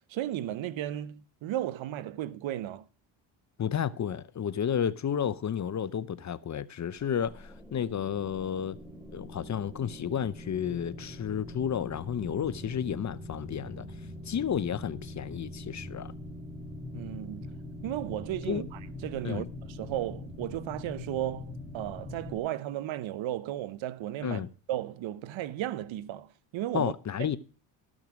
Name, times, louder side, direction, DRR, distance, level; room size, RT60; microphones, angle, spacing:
voice 1, 0.1-2.8 16.9-17.5 17.8-26.9, right 13 dB, 65° right, 0.9 m, -35 dB
voice 2, 3.6-8.8 9.1-13.9 14.3-16.1 18.5-18.6 19.2-19.5 24.2-24.5 26.7-27.4, left 8 dB, 35° left, 0.7 m, -32 dB
sound 1, 6.9-22.4, left 1 dB, 5° right, 3.1 m, -43 dB
13.0 x 6.3 x 6.2 m
supercardioid pair, 75°, 49 cm